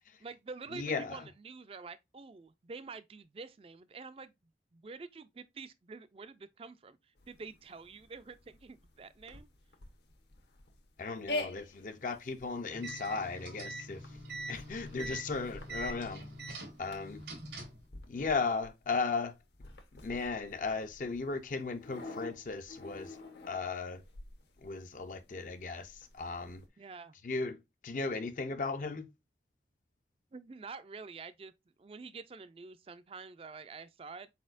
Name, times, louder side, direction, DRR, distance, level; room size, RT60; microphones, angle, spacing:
voice 1, 0.2-4.3 4.7-7.0 7.3-9.5 26.8-27.1 30.3-31.5 31.8-34.3, right 4 dB, 30° right, 0.4 m, -47 dB
voice 2, 0.7-1.2 11.0-14.0 14.5-16.2 16.8-17.2 18.1-19.3 20.0-23.2 23.5-24.0 24.6-26.6 27.2-29.1, left 4 dB, 45° left, 0.5 m, -36 dB
sound 1, 7.2-26.7, left 1 dB, 75° left, 1.0 m, -47 dB
sound 2, 12.7-17.9, right 2 dB, 85° right, 1.6 m, -44 dB
4.3 x 4.2 x 2.4 m
head